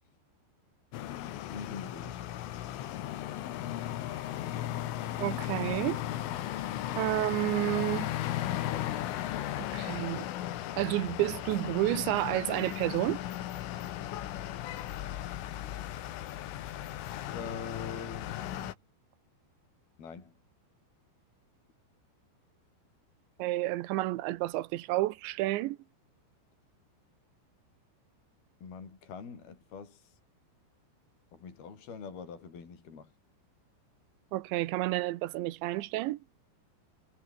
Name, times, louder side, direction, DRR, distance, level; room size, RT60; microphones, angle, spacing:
sound 1, 0.9-18.7, left 13 dB, 80° left, 4.4 m, -36 dB
voice 1, 1.5-2.2 17.3-18.8 20.0-20.3 28.6-30.2 31.3-33.1, left 5 dB, 50° left, 7.0 m, -44 dB
voice 2, 5.2-6.0 7.0-8.1 9.6-10.3 10.8-13.2 23.4-25.8 34.3-36.2, right 17 dB, 75° right, 3.0 m, -30 dB
omnidirectional pair, 5.7 m